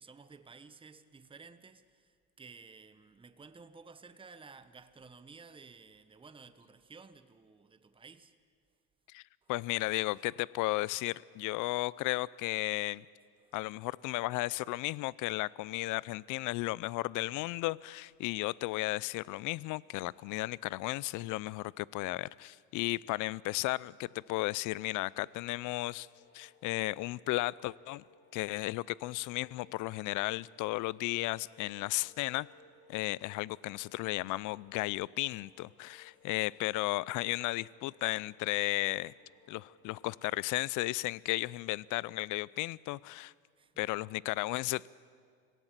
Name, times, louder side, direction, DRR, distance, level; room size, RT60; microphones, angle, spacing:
voice 1, 0.0-8.3 9.4-9.5 13.4-13.5 43.6-43.7, right 4 dB, 15° right, 1.0 m, -54 dB
voice 2, 9.5-13.1 13.5-26.1 26.3-28.0 28.3-32.5 32.9-39.1 39.5-43.3 43.8-44.9, left 20 dB, 60° left, 0.5 m, -34 dB
sound 1, 26.0-40.5, left 3 dB, 35° left, 6.7 m, -64 dB
25.5 x 17.0 x 7.5 m
supercardioid pair, 95°, 35 cm